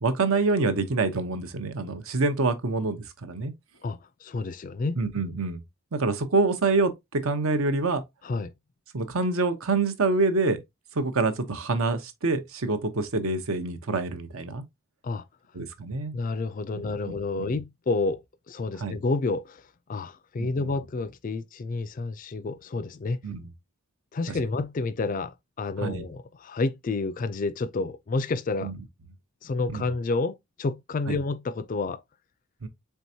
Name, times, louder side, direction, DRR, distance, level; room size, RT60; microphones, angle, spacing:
voice 1, 0.0-3.5 5.0-5.6 5.9-8.0 8.9-10.6 10.9-14.6 15.5-16.1 16.7-17.6 18.8-19.0 20.4-20.8 23.2-23.5 25.8-26.0 28.6-28.8 29.7-29.8 31.1-31.2 32.6-32.7, right 3 dB, 70° right, 0.7 m, -26 dB
voice 2, 3.8-5.0 8.2-8.5 15.0-15.3 16.1-19.6 19.9-23.2 24.1-28.7 29.4-32.0, left 3 dB, 35° left, 0.3 m, -29 dB
4.5 x 3.4 x 2.7 m
head